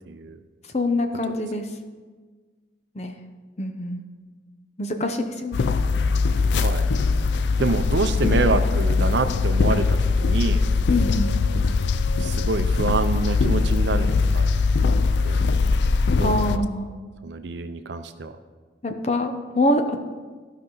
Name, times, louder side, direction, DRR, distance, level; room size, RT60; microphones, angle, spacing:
voice 1, 0.1-0.4 6.5-6.9 7.6-10.6 12.2-14.4 15.2-15.4 16.2-16.6 17.2-18.3, right 3 dB, 70° right, 9 dB, 0.6 m, -26 dB
voice 2, 0.7-1.7 2.9-3.2 3.6-4.0 4.8-5.6 10.9-11.3 16.2-17.0 18.8-20.0, left 1 dB, 35° left, 6 dB, 0.7 m, -25 dB
sound 1, 5.5-16.6, left 4 dB, 70° left, 0.4 m, -21 dB
15.0 x 5.4 x 3.9 m, 1.4 s
head